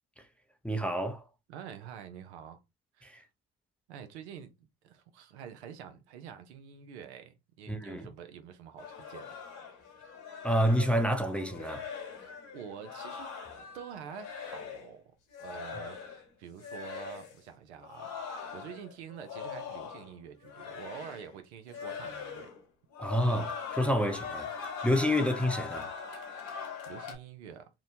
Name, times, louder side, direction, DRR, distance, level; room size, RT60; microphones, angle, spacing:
voice 1, 0.6-1.2 3.0-3.2 7.7-8.1 10.4-11.9 23.0-24.5 24.8-25.9, equal, 5° left, 0.4 m, -28 dB
voice 2, 1.5-2.6 2.9-3.2 3.9-9.7 12.2-13.3 13.7-15.1 15.4-18.1 18.5-22.5 25.1-25.2 26.4-27.7, right 8 dB, 85° right, 0.6 m, -47 dB
sound 1, 8.8-14.9 15.3-16.3 16.6-17.4 17.8-20.2 20.4-21.4 21.7-22.6 22.9-27.2, left 6 dB, 60° left, 1.1 m, -42 dB
2.8 x 2.2 x 2.6 m
hypercardioid pair, 65°, 33 cm